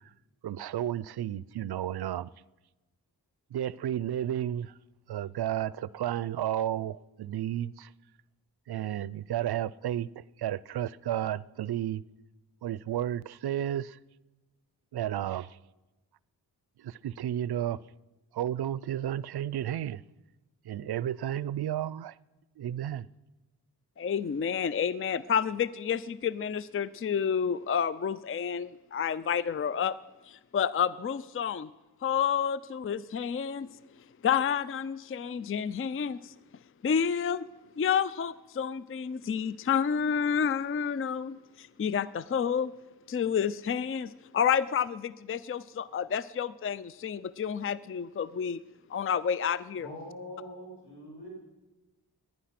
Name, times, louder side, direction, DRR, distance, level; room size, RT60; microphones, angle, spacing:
voice 1, 0.4-2.3 3.5-4.7 5.1-7.9 8.7-12.0 12.6-14.0 14.9-15.6 16.8-17.8 18.3-20.0 20.6-22.1 22.6-23.1, right 11 dB, 70° right, 0.5 m, -32 dB
voice 2, 24.0-30.0 30.3-31.7 32.0-33.7 34.2-36.3 36.8-37.4 37.8-42.7 43.1-48.6 48.9-49.9, left 7 dB, 35° left, 0.4 m, -29 dB
voice 3, 49.8-51.3, left 1 dB, 90° left, 6.9 m, -43 dB
18.5 x 11.0 x 5.9 m
cardioid pair, 50°, 40 cm